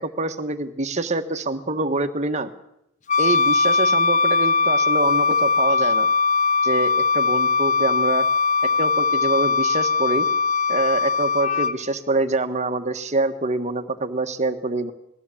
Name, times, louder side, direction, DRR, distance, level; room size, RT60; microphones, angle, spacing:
voice 1, 0.0-2.5 3.2-6.1 6.6-8.2 8.8-10.2 10.7-14.9, right 2 dB, 35° right, 8 dB, 1.6 m, -25 dB
Wind instrument woodwind instrument, 3.1-11.7, left 4 dB, 35° left, 0.8 m, -20 dB
21.0 x 15.5 x 8.6 m, 0.78 s
head